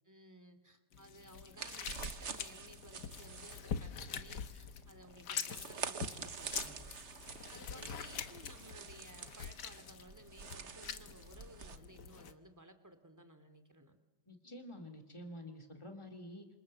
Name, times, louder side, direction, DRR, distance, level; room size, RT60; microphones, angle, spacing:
voice 1, 0.0-6.9 7.5-14.0, right 1 dB, 10° right, 8 dB, 2.6 m, -57 dB
sound 1, 0.9-12.3, left 7 dB, 80° left, 1.9 m, -45 dB
sound 2, 1.6-11.8, right 6 dB, 45° right, 1.4 m, -47 dB
voice 2, 14.3-16.5, left 1 dB, 15° left, 4 dB, 2.9 m, -49 dB
27.5 x 27.0 x 7.7 m, 1.1 s
omnidirectional pair, 1.8 m